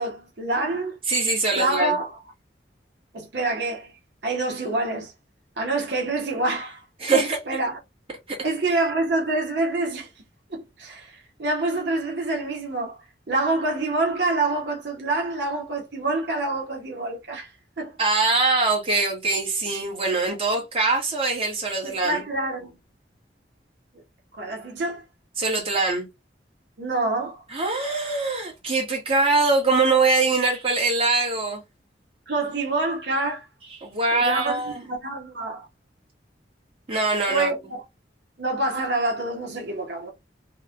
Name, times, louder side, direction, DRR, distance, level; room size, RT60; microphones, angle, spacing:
voice 1, 0.0-1.0 1.5-2.2 3.1-3.9 4.2-5.1 5.6-6.8 7.1-7.8 8.4-10.1 10.5-13.0 13.3-18.0 21.8-22.8 24.4-25.0 26.8-27.4 32.3-33.5 34.1-35.7 37.3-37.8 38.4-40.1, right 2 dB, 70° right, 0.8 m, -27 dB
voice 2, 1.1-1.9 7.0-7.4 8.3-8.4 18.0-22.2 25.4-26.1 27.5-31.6 33.8-34.8 36.9-37.5, right 3 dB, 30° right, 1.1 m, -23 dB
3.1 x 2.1 x 2.4 m
head